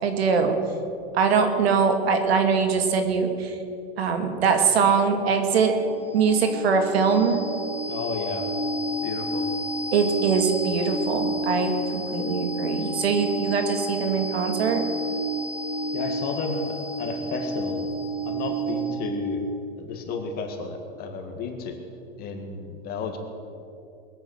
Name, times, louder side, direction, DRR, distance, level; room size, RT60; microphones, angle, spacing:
voice 1, 0.0-0.5 1.1-3.6 4.0-5.7 6.1-7.4 9.9-14.8, right 5 dB, 85° right, 6 dB, 2.2 m, -22 dB
sound 1, 5.4-19.2, right 1 dB, 40° right, 4.4 m, -30 dB
voice 2, 7.9-8.5 9.0-9.5 15.9-17.9 18.2-19.4 19.8-21.8 22.2-23.2, left 4 dB, 30° left, 4 dB, 1.9 m, -32 dB
21.5 x 8.9 x 6.6 m, 2.6 s
supercardioid pair, 150°, 31 cm